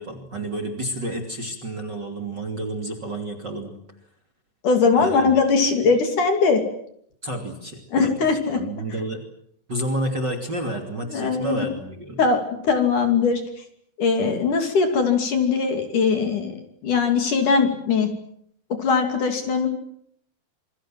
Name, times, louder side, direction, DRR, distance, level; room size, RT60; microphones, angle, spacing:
voice 1, 0.0-3.8 5.0-5.3 7.2-8.1 8.5-9.2 9.7-12.2, right 1 dB, 30° right, 4 dB, 2.9 m, -30 dB
voice 2, 4.6-6.6 7.9-8.6 11.1-11.7 12.2-12.4 12.6-13.4 14.0-16.6 16.8-18.1 18.8-19.7, left 5 dB, 50° left, 5 dB, 4.0 m, -20 dB
27.5 x 23.5 x 7.7 m, 0.68 s
omnidirectional pair, 4.9 m